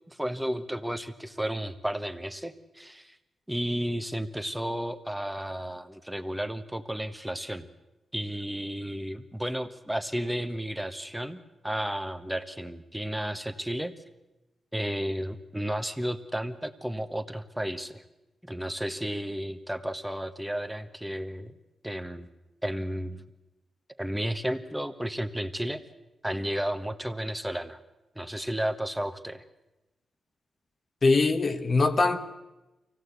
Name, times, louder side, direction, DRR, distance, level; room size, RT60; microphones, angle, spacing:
voice 1, 0.1-3.1 3.5-7.7 8.1-13.9 14.7-18.0 18.4-21.5 21.8-22.3 22.6-23.2 24.0-25.8 26.2-27.8 28.1-29.4, equal, 5° right, 1.3 m, -33 dB
voice 2, 31.0-32.2, left 3 dB, 50° left, 1.4 m, -22 dB
23.5 x 17.0 x 8.2 m
cardioid pair, 65°, 0 cm